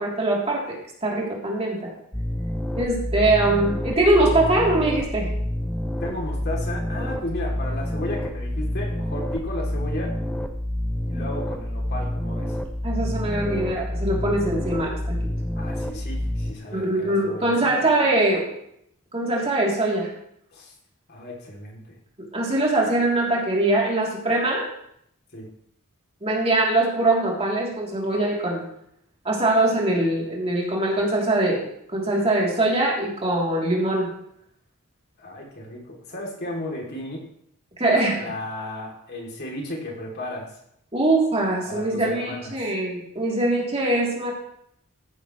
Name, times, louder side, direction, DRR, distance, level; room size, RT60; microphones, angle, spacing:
voice 1, 0.0-1.9 2.8-5.3 12.8-15.2 16.7-18.5 19.1-20.1 22.3-24.7 26.2-28.6 29.2-31.6 31.9-34.1 37.8-38.2 40.9-44.3, right 2 dB, 30° right, -4 dB, 3.3 m, -22 dB
sound 1, 2.1-16.5, left 1 dB, 5° left, 0.9 m, -28 dB
voice 2, 6.0-10.1 11.0-12.6 15.6-17.8 20.5-20.7 21.1-22.0 25.3-25.5 35.2-37.2 38.2-40.5 41.6-42.5, left 1 dB, 50° left, -1 dB, 3.1 m, -34 dB
15.0 x 10.5 x 3.3 m, 0.72 s
head